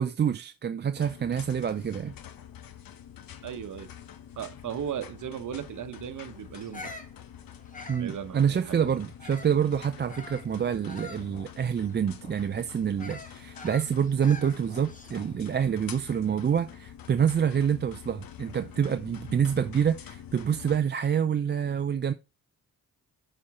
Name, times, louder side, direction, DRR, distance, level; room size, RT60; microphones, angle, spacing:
voice 1, 0.0-2.1 7.9-22.1, right 8 dB, 30° right, 0.4 m, -27 dB
sound 1, 1.0-20.8, left 9 dB, 80° left, 0.9 m, -46 dB
voice 2, 3.4-3.9 4.4-6.9 8.0-8.9, right 9 dB, 60° right, 0.9 m, -36 dB
Bird vocalization bird call bird song, 6.5-9.6 10.1-15.4, left 3 dB, 25° left, 1.3 m, -46 dB
7.2 x 4.4 x 4.7 m
cardioid pair, 100°, 34 cm